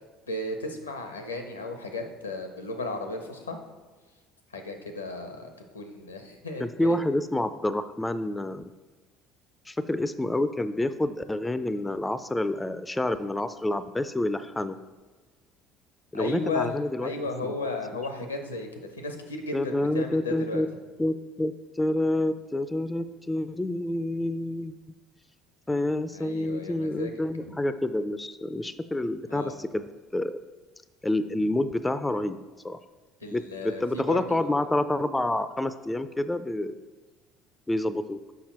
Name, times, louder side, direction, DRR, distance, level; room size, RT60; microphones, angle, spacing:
voice 1, 0.3-3.6 4.5-5.5 5.7-7.0 16.1-16.7 17.0-20.6 26.1-27.1 29.3-29.6 33.2-34.5, left 3 dB, 90° left, 5 dB, 0.8 m, -34 dB
voice 2, 6.6-8.6 9.7-14.8 16.1-17.1 17.4-17.5 19.5-20.7 21.0-24.7 25.7-29.8 30.1-30.3 31.0-32.4 32.6-32.8 33.3-36.8 37.7-38.2, left 1 dB, 10° left, 12 dB, 0.4 m, -28 dB
6.6 x 5.6 x 4.3 m, 1.3 s
figure-of-eight pair, 60°, 0 cm